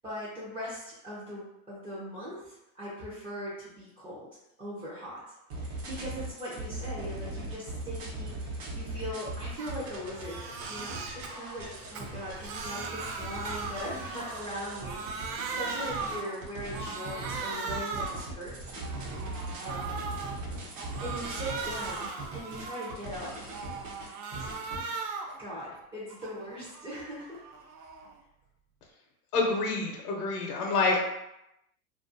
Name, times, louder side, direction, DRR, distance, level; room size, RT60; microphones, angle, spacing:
voice 1, 0.0-4.3 4.6-18.5 19.6-20.1 21.0-23.5 23.9-24.1 24.4-24.5 25.4-27.4, equal, 10° right, -10 dB, 0.4 m, -40 dB
sound 1, 5.5-24.8, right 2 dB, 55° right, 0.9 m, -40 dB
Crying sobbing, 9.6-9.8 10.1-11.3 11.8-14.5 14.8-16.3 16.7-18.2 18.7-20.3 20.7-23.1 23.5-25.4 25.8-28.1, right 4 dB, 80° right, 0.6 m, -38 dB
voice 2, 29.3-31.0, left 3 dB, 80° left, 1 dB, 0.7 m, -27 dB
2.4 x 2.2 x 2.5 m, 0.87 s
hypercardioid pair, 125°, 46 cm